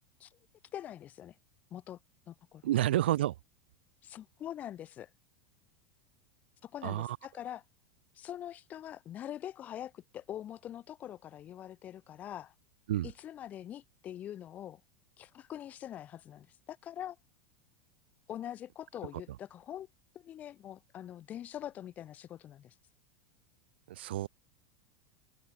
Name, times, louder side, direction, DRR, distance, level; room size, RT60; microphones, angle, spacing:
voice 1, 0.7-1.4 1.7-2.0 2.3-2.6 4.0-5.1 6.6-7.6 8.1-12.5 13.0-14.8 15.2-17.2 18.3-19.9 20.1-22.7, left 11 dB, 30° left, 6.6 m, -44 dB
voice 2, 2.6-3.3 6.8-7.2 12.9-13.1 23.9-24.3, right 13 dB, 90° right, 1.9 m, -29 dB
open air
supercardioid pair, 150°, 6 cm